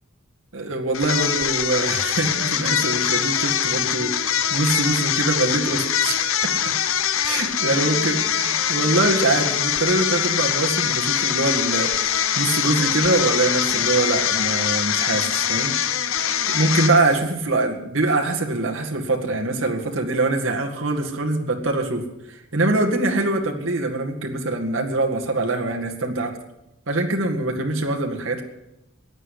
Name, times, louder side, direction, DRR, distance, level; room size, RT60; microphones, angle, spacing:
voice 1, 0.5-6.5 7.2-15.7 16.5-26.4 26.9-28.4, right 2 dB, 65° right, 1 dB, 2.0 m, -23 dB
sound 1, 0.9-17.3, left 9 dB, 75° left, 0.9 m, -23 dB
16.5 x 10.0 x 8.5 m, 0.93 s
head